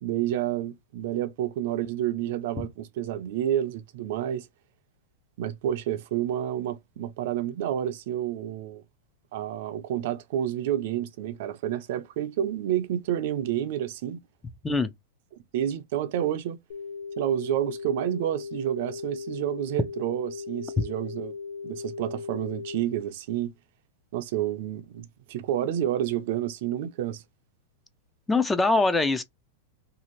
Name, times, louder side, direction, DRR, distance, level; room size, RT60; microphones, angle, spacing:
voice 1, 0.0-4.5 5.4-8.8 9.3-14.2 15.5-16.6 17.2-21.3 21.6-23.5 24.1-27.2, right 11 dB, 60° right, 0.5 m, -29 dB
sound 1, 16.7-22.8, left 5 dB, 85° left, 0.6 m, -38 dB
voice 2, 28.3-29.2, left 3 dB, 10° left, 0.4 m, -23 dB
2.7 x 2.4 x 3.0 m
hypercardioid pair, 125°, 0 cm